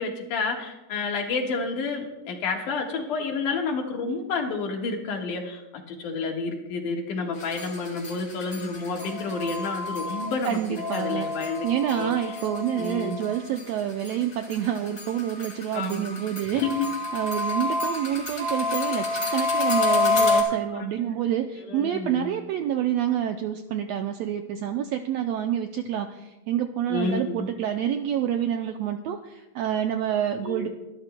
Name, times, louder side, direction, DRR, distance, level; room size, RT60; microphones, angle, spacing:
voice 1, 0.0-10.6 10.9-12.3 12.8-13.2 15.7-16.1 16.5-16.9 20.7-21.3 21.7-22.3 26.9-27.5 30.4-30.7, left 4 dB, 80° left, 1 dB, 3.1 m, -30 dB
sound 1, 7.4-13.6 14.0-20.4, left 3 dB, 30° left, 2.5 m, -28 dB
voice 2, 10.4-11.3 11.6-16.6 17.1-30.7, right 10 dB, 85° right, 6 dB, 1.5 m, -28 dB
24.0 x 12.0 x 2.2 m, 1.0 s
omnidirectional pair, 3.6 m